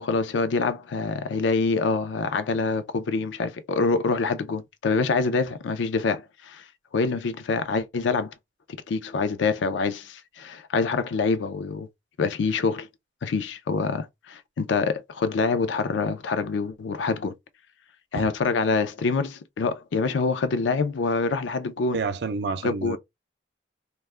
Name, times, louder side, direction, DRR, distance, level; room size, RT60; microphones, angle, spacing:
voice 1, 0.0-6.6 6.9-8.3 8.9-11.9 12.2-12.9 13.2-17.4 18.1-22.0 22.6-23.0, left 4 dB, 85° left, 0.4 m, -26 dB
voice 2, 21.9-23.0, right 4 dB, 65° right, 0.4 m, -29 dB
2.3 x 2.1 x 3.2 m
head